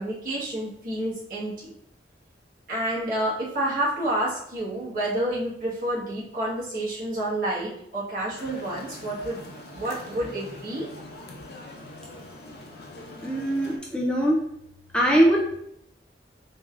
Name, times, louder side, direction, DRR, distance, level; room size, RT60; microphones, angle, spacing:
voice 1, 0.0-1.7 2.7-9.4 9.7-10.9, right 1 dB, 50° right, -7 dB, 1.5 m, -29 dB
sound 1, 8.4-13.8, left 2 dB, 60° left, 0.6 m, -43 dB
voice 2, 13.2-14.4 14.9-15.5, equal, 5° left, -3 dB, 0.3 m, -21 dB
3.8 x 3.3 x 2.5 m, 0.74 s
head